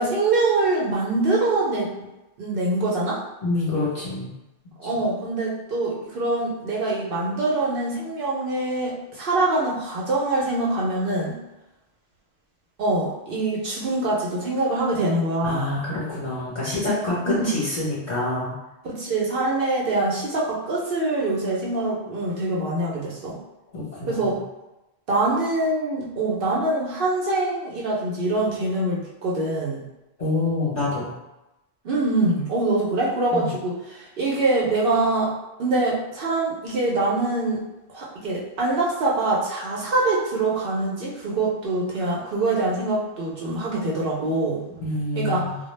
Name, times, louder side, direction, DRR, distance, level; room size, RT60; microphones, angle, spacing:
voice 1, 0.0-1.9 2.4-3.2 4.8-11.4 12.8-15.7 17.2-17.6 18.9-23.4 24.1-24.4 25.1-29.8 31.8-35.3 35.6-37.6 37.9-44.6 45.1-45.4, right 2 dB, 60° right, -4 dB, 0.7 m, -24 dB
voice 2, 3.4-4.3 15.4-18.5 23.7-24.4 30.2-31.1 33.3-33.5 44.8-45.6, left 2 dB, 40° left, -10 dB, 0.9 m, -26 dB
2.1 x 2.0 x 3.1 m, 0.98 s
omnidirectional pair, 1.1 m